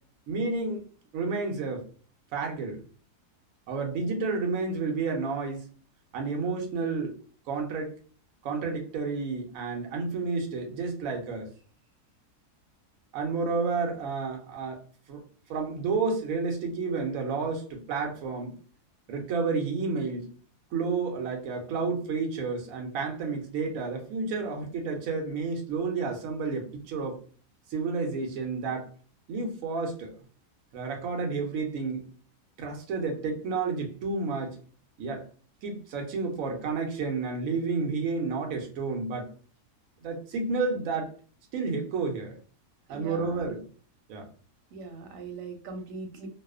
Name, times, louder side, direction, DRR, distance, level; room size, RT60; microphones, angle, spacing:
voice 1, 0.3-0.8 1.1-1.8 2.3-2.8 3.7-5.7 6.1-7.2 7.5-7.9 8.4-11.5 13.1-14.8 15.1-15.2 15.5-18.5 19.1-20.3 20.7-27.2 27.7-28.9 29.3-30.2 30.7-32.0 32.6-34.6 35.0-35.3 35.6-39.3 40.0-41.1 41.5-42.3 42.9-43.7 44.1-44.3, right 4 dB, 65° right, 2 dB, 1.0 m, -30 dB
voice 2, 42.9-43.5 44.7-46.3, right 3 dB, 90° right, 4 dB, 1.2 m, -40 dB
2.8 x 2.0 x 2.3 m, 0.42 s
omnidirectional pair, 1.7 m